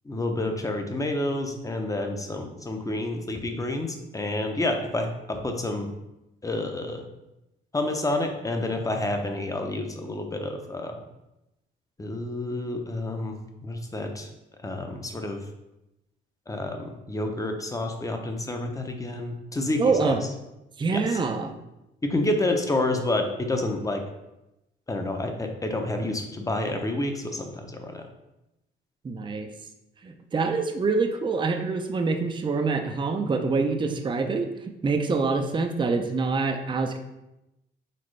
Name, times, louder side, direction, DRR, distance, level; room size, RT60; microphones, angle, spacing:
voice 1, 0.0-5.9 6.4-7.0 7.7-11.0 12.0-14.3 14.6-15.4 16.5-20.2 20.9-21.2 22.0-24.0 24.9-28.0, left 2 dB, 15° left, 4 dB, 0.7 m, -29 dB
voice 2, 19.8-20.2 20.8-21.5 29.0-29.5 30.0-34.5 34.8-37.0, right 4 dB, 25° right, 5 dB, 0.5 m, -25 dB
4.2 x 3.8 x 3.2 m, 0.93 s
cardioid pair, 90°, 20 cm